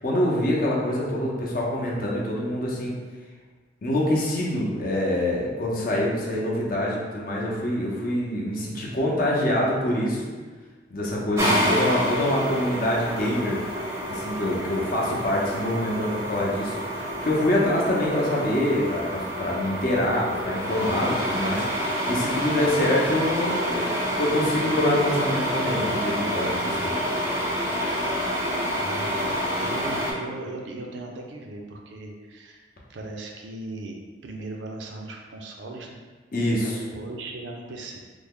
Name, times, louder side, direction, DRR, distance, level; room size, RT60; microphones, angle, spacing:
voice 1, 0.0-2.9 3.8-10.3 10.9-13.6 14.1-27.0 36.3-36.8, left 1 dB, 50° left, -3 dB, 0.6 m, -25 dB
sound 1, 11.4-30.1, equal, 15° right, 0.6 m, -28 dB
voice 2, 28.8-32.6 32.9-36.0 36.6-38.0, right 2 dB, 75° right, 1 dB, 0.5 m, -38 dB
3.3 x 2.0 x 3.6 m, 1.4 s
head